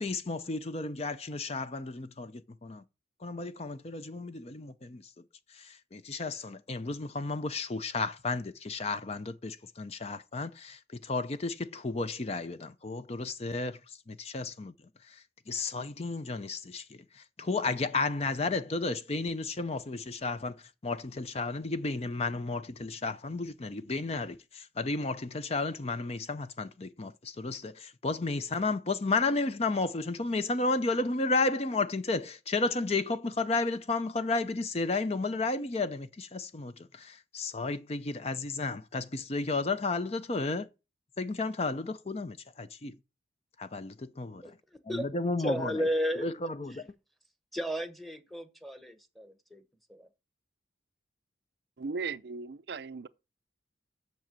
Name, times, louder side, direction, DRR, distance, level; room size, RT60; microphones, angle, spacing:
voice 1, 0.0-2.8 3.2-5.1 5.5-40.7 41.2-43.0 43.6-44.4 44.9-45.9 46.2-46.9, left 3 dB, 30° left, 0.5 m, -33 dB
voice 2, 45.4-46.3 47.5-49.6 49.9-50.1, equal, ahead, 1.0 m, -33 dB
voice 3, 51.8-53.1, right 4 dB, 55° right, 0.5 m, -37 dB
7.6 x 6.7 x 7.4 m
head